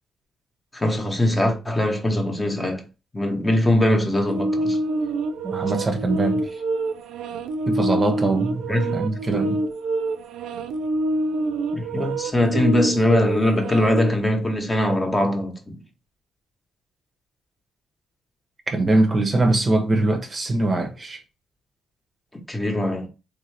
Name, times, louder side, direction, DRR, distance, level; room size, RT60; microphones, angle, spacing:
voice 1, 0.7-2.8 3.1-4.8 8.7-9.0 11.7-15.8 22.5-23.1, left 1 dB, 20° left, 0.9 m, -21 dB
sound 1, 4.3-14.1, right 2 dB, 85° right, 0.4 m, -26 dB
voice 2, 5.4-6.6 7.7-9.6 18.7-21.2, right 2 dB, 30° right, 0.8 m, -22 dB
3.5 x 2.6 x 3.2 m
cardioid pair, 90°, 0 cm